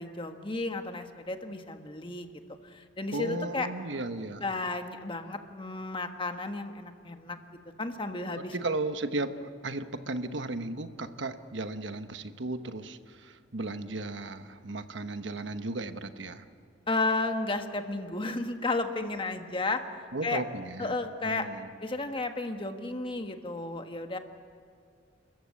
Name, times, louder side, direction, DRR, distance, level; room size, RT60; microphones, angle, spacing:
voice 1, 0.0-2.3 2.6-3.7 4.4-7.4 7.8-8.5 16.9-19.8 20.2-20.4 20.8-21.5 21.8-24.2, left 3 dB, 30° left, 6 dB, 1.4 m, -33 dB
voice 2, 3.1-4.5 8.4-16.4 20.1-21.0 21.2-21.7, right 2 dB, 80° right, 9 dB, 1.2 m, -35 dB
30.0 x 14.5 x 8.5 m, 2.3 s
head